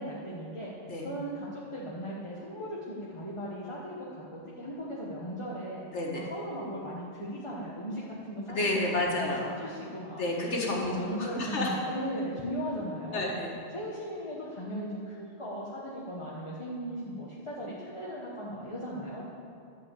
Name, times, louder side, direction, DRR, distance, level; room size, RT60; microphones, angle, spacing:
voice 1, 0.0-0.7 1.0-5.8 6.1-9.0 9.4-10.2 10.7-13.3 13.7-19.2, equal, 30° left, -6 dB, 1.2 m, -37 dB
voice 2, 5.9-6.2 8.5-9.5 10.2-10.9 11.2-11.7 13.1-13.5, left 2 dB, 85° left, -2 dB, 1.9 m, -30 dB
11.5 x 4.9 x 8.2 m, 2.5 s
omnidirectional pair, 1.2 m